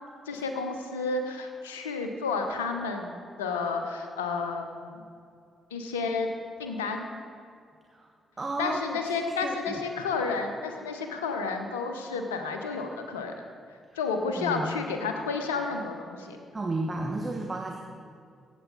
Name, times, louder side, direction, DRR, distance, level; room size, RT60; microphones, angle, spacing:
voice 1, 0.3-5.0 5.7-6.3 6.6-7.1 8.6-13.3 13.9-16.4, left 4 dB, 85° left, 5 dB, 0.9 m, -31 dB
voice 2, 8.4-9.0 9.4-9.8 14.2-14.7 16.5-17.8, right 2 dB, 30° right, 1 dB, 1.2 m, -32 dB
16.0 x 8.2 x 4.0 m, 2.3 s
hypercardioid pair, 40°, 0 cm